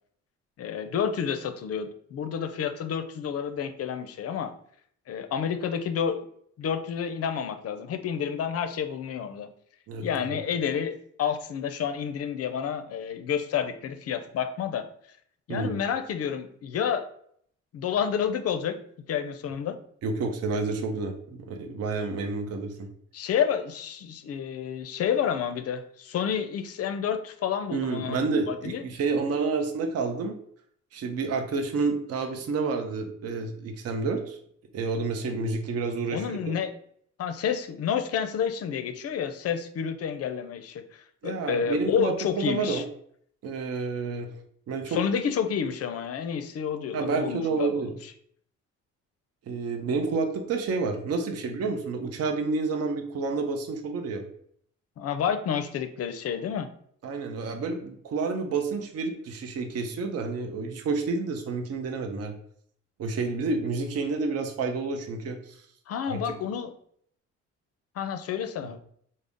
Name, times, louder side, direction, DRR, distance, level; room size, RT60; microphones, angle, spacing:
voice 1, 0.6-4.5 5.1-6.3 6.6-9.5 10.0-14.9 15.5-17.1 17.7-18.8 19.1-19.8 23.1-28.8 36.1-36.7 37.2-42.8 44.9-47.8 55.0-56.7 65.9-66.7 68.0-68.8, left 7 dB, 55° left, 9 dB, 0.5 m, -29 dB
voice 2, 9.9-10.4 15.5-15.7 20.0-22.9 27.7-30.3 30.9-34.4 34.7-36.5 41.2-42.8 43.4-44.3 44.7-45.0 46.9-47.9 49.5-54.2 57.0-62.3 63.0-65.6 66.1-66.3, right 4 dB, 55° right, 4 dB, 0.6 m, -29 dB
3.8 x 2.0 x 3.5 m, 0.65 s
cardioid pair, 90°, 30 cm